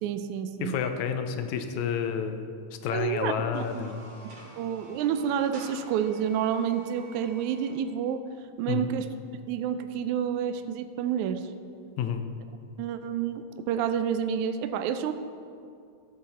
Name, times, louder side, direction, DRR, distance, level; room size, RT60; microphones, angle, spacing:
voice 1, 0.0-0.8 2.9-3.9 4.2-4.3 4.6-8.2 8.6-9.1 9.5-11.4 12.8-15.1, right 8 dB, 80° right, 9 dB, 1.9 m, -29 dB
voice 2, 0.6-2.4 2.8-4.0 8.7-8.9 12.0-12.3, left 7 dB, 75° left, 7 dB, 1.9 m, -30 dB
sound 1, 3.4-7.7, right 1 dB, 55° right, 2.9 m, -49 dB
15.0 x 7.4 x 4.2 m, 2.4 s
omnidirectional pair, 3.6 m